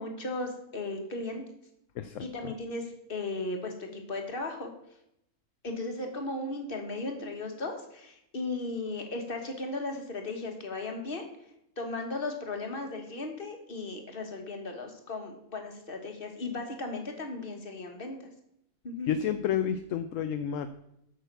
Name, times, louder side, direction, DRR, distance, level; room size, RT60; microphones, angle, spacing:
voice 1, 0.0-1.4 2.2-4.7 5.6-11.3 11.8-18.3 18.8-19.1, left 2 dB, 35° left, 4 dB, 1.6 m, -36 dB
voice 2, 2.0-2.5 19.1-20.7, left 8 dB, 65° left, 10 dB, 0.9 m, -30 dB
8.9 x 6.5 x 6.7 m, 0.79 s
omnidirectional pair, 1.6 m